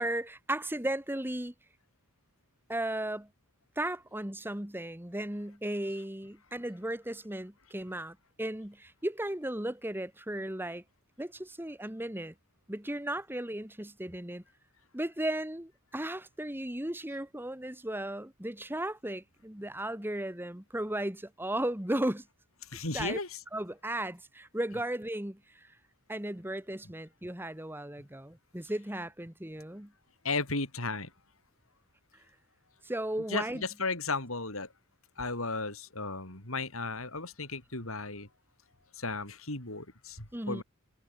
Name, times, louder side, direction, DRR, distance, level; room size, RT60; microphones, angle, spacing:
voice 1, 0.0-1.5 2.7-3.3 3.7-10.8 11.2-12.3 12.7-14.4 14.9-22.2 22.9-23.2 23.5-25.7 26.1-29.9 32.8-33.6 40.3-40.6, right 1 dB, 10° right, 1.6 m, -35 dB
voice 2, 22.7-23.3 30.2-31.1 33.3-34.7 35.2-38.3 39.0-40.6, left 3 dB, 75° left, 5.9 m, -35 dB
head